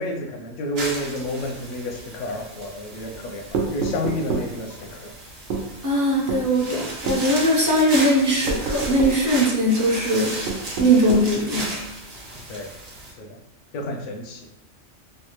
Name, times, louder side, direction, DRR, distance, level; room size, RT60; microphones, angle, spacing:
voice 1, 0.0-3.4 3.7-5.1 12.5-12.7 13.2-13.4 13.7-14.5, left 1 dB, 85° left, 3 dB, 0.9 m, -30 dB
sound 1, 0.8-13.1, right 1 dB, 60° right, 1.1 m, -35 dB
sound 2, 3.5-4.5 5.5-5.7 6.3-6.5 7.1-7.2 8.5-9.2 10.5-11.3, right 4 dB, 90° right, 1.0 m, -27 dB
voice 2, 5.8-10.4 10.8-11.7, right 1 dB, 25° right, -4 dB, 0.4 m, -20 dB
3.2 x 2.2 x 2.9 m, 0.89 s
omnidirectional pair, 1.2 m